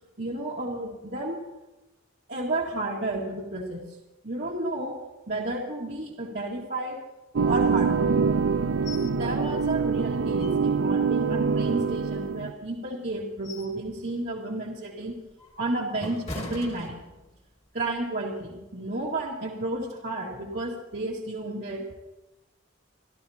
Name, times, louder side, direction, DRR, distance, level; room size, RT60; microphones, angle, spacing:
voice 1, 0.2-1.4 2.3-3.8 4.2-4.9 5.3-7.0 7.4-8.4 9.0-15.1 15.6-17.0 17.7-21.8, right 2 dB, 55° right, -4 dB, 1.9 m, -32 dB
sound 1, 7.4-12.5, right 5 dB, 75° right, 0.5 m, -25 dB
sound 2, 8.9-9.2 9.5-9.6 10.1-10.9 11.4-12.5 13.0-13.8 14.2-14.5 15.0-17.5 17.9-18.1, left 1 dB, 30° left, 1.9 m, -41 dB
29.0 x 13.5 x 2.8 m, 1.0 s
head